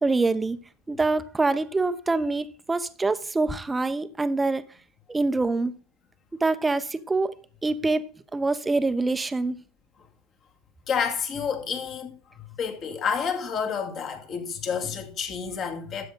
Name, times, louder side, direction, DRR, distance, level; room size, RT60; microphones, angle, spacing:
voice 1, 0.0-0.6 0.9-4.7 5.1-5.8 6.4-7.3 7.6-9.6, right 3 dB, 15° right, 0.8 m, -25 dB
voice 2, 10.9-16.0, left 6 dB, 40° left, 2.2 m, -29 dB
12.5 x 7.8 x 3.9 m
hypercardioid pair, 90°, 0 cm